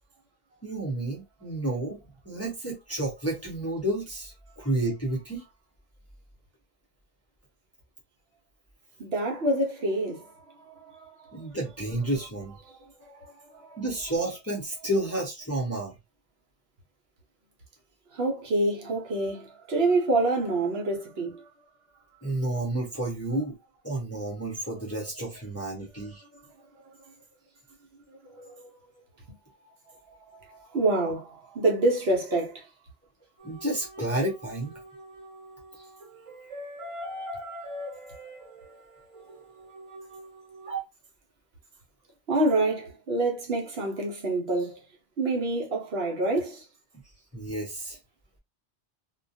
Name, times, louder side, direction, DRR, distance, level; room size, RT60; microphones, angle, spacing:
voice 1, 0.6-2.0 2.3-5.4 11.3-12.5 13.8-16.0 22.2-23.5 23.8-26.2 33.4-34.7 47.3-48.0, right 1 dB, 15° left, 0.6 m, -30 dB
voice 2, 9.0-11.5 12.6-13.8 18.1-21.5 26.3-26.4 26.8-27.0 28.2-28.5 29.6-32.7 42.3-44.8 45.2-46.7, right 2 dB, 65° right, 1.0 m, -28 dB
sound 1, 33.4-40.8, right 1 dB, 35° right, 0.7 m, -41 dB
2.4 x 2.2 x 2.6 m
omnidirectional pair, 1.1 m